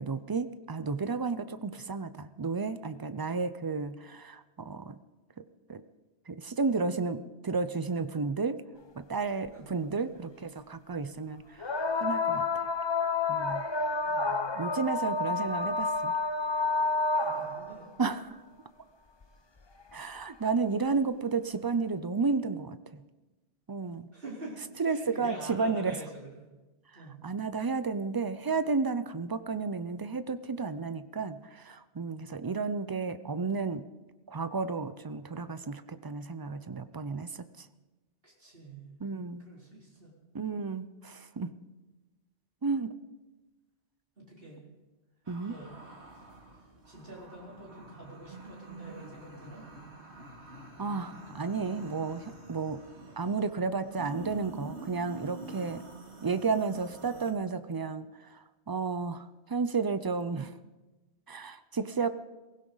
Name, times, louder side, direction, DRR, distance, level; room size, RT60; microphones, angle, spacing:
voice 1, 0.0-5.0 5.7-5.8 6.3-8.6 9.0-12.6 13.3-13.6 14.5-16.1 18.0-18.4 19.9-23.0 23.7-24.1 24.8-26.0 26.9-33.8 34.3-37.7 39.0-39.4 40.3-41.5 42.6-42.9 45.3-45.6 50.8-52.8 53.2-55.8 56.2-60.5 61.3-62.1, right 4 dB, 35° right, 12 dB, 0.4 m, -32 dB
sound 1, 9.5-9.6 11.6-17.7 19.2-19.3 20.2-20.3, left 3 dB, 30° left, 0.7 m, -29 dB
voice 2, 9.5-10.1 14.0-14.6 15.3-15.5 17.2-17.9 24.1-24.6 24.9-26.5 26.9-27.2 38.2-39.0 39.4-40.1 44.2-44.6 45.5-45.8 46.9-49.6, right 2 dB, 55° right, -4 dB, 4.5 m, -46 dB
sound 2, 45.3-57.3, right 2 dB, 80° right, 2.5 m, -47 dB
22.5 x 16.0 x 4.0 m, 1.1 s
omnidirectional pair, 1.1 m